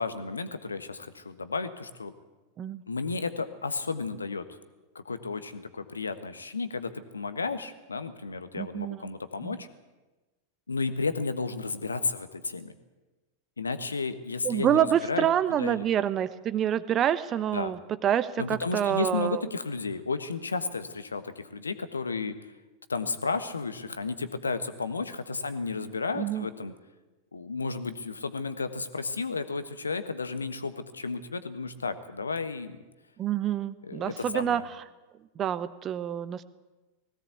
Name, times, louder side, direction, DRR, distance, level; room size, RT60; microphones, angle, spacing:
voice 1, 0.0-2.1 2.9-4.5 4.9-9.7 10.7-12.7 13.6-15.9 17.5-17.7 18.4-22.3 22.9-26.7 27.3-32.8 33.8-34.7, left 4 dB, 75° left, 12 dB, 1.4 m, -33 dB
voice 2, 8.5-9.0 9.4-9.6 14.4-19.4 26.1-26.5 33.2-34.6 35.4-36.4, right 10 dB, 30° right, 15 dB, 1.0 m, -27 dB
20.0 x 17.0 x 8.3 m, 1.1 s
figure-of-eight pair, 90°, 0 cm